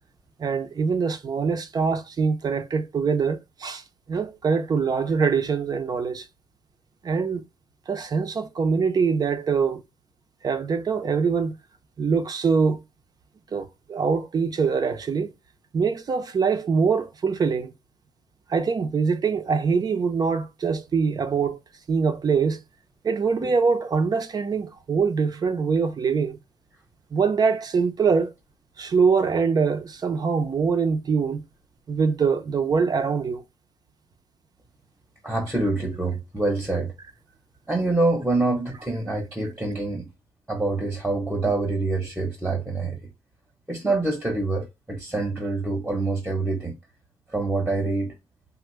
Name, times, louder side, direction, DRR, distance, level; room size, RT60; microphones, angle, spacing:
voice 1, 0.4-6.3 7.0-7.4 7.9-9.8 10.4-11.5 12.0-12.8 13.5-15.3 15.7-17.7 18.5-21.6 21.9-22.6 23.0-26.4 27.1-28.3 28.8-31.4 31.9-33.4, right 5 dB, 35° right, 0.5 m, -23 dB
voice 2, 35.2-36.9 37.7-40.1 40.5-43.1 43.7-46.8 47.3-48.1, right 2 dB, 5° right, 0.8 m, -26 dB
3.5 x 2.1 x 3.0 m
wide cardioid pair, 160°, 11 cm